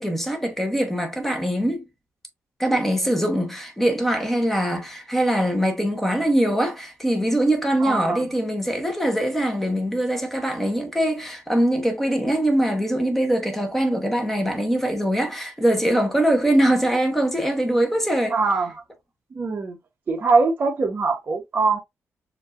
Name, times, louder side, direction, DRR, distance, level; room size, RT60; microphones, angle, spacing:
voice 1, 0.0-1.8 2.6-18.4, right 1 dB, 5° left, 1.1 m, -22 dB
voice 2, 7.8-8.2 18.3-18.8 19.3-19.8 20.1-21.8, right 4 dB, 35° right, 0.9 m, -22 dB
7.1 x 2.8 x 2.5 m
wide cardioid pair, 165°, 6 cm